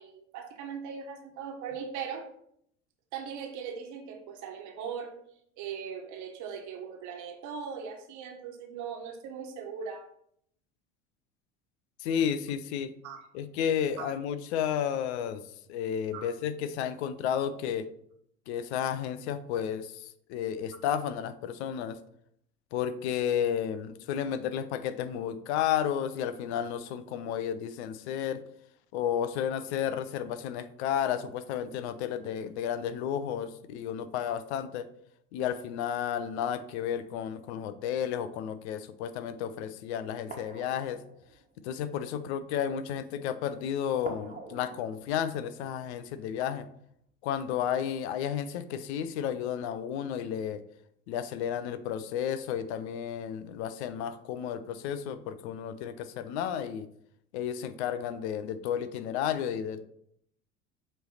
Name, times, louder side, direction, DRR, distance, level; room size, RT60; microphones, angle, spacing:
voice 1, 0.0-2.3 3.1-5.1 5.6-10.1 13.0-13.2 14.0-14.1 16.1-16.3, right 6 dB, 55° right, 4 dB, 1.4 m, -39 dB
voice 2, 12.0-12.9 13.3-15.4 15.7-17.9 18.5-22.0 22.7-28.4 28.9-34.9 35.3-41.0 41.6-46.7 47.2-50.6 51.1-56.9 57.3-59.8, left 9 dB, 65° left, 13 dB, 0.6 m, -32 dB
sound 1, 39.7-39.8 40.3-42.0 44.0-46.6 46.9-47.0, right 4 dB, 20° right, 1.4 m, -47 dB
7.8 x 3.2 x 4.1 m, 0.70 s
hypercardioid pair, 70°, 36 cm